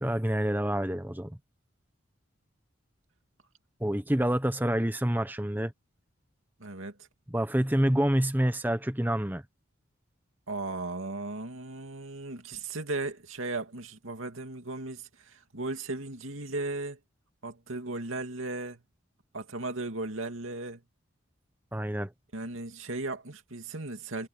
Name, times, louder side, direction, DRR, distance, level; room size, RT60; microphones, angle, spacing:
voice 1, 0.0-1.4 3.8-5.7 7.3-9.4 21.7-22.1, right 1 dB, 10° right, 1.0 m, -27 dB
voice 2, 6.6-7.0 10.5-17.0 17.4-18.8 19.3-20.8 22.3-24.3, right 2 dB, 80° right, 2.6 m, -36 dB
head